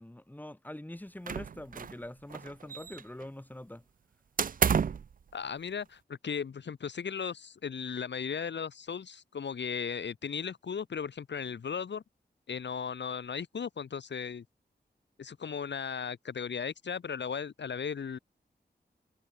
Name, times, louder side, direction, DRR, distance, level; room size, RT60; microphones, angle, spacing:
voice 1, 0.0-3.8, left 1 dB, 10° left, 6.5 m, -44 dB
sound 1, 1.3-2.0 2.3-3.2 4.4-5.1, right 7 dB, 50° right, 0.5 m, -30 dB
voice 2, 5.3-12.0 12.5-14.4 15.2-18.2, left 6 dB, 80° left, 1.9 m, -36 dB
wide cardioid pair, 130°, 18 cm